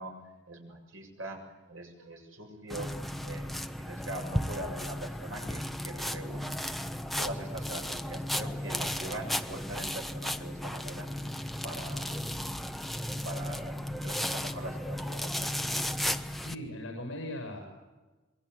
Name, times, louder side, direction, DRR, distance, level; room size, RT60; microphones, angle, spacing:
voice 1, 0.0-2.9 3.2-11.1 11.6-12.4 13.2-15.8, right 1 dB, 75° right, 2 dB, 7.4 m, -42 dB
sound 1, 2.7-16.5, left 1 dB, ahead, 1.0 m, -35 dB
voice 2, 16.4-17.6, left 1 dB, 65° left, 2 dB, 6.8 m, -39 dB
27.0 x 23.0 x 8.3 m, 1.2 s
head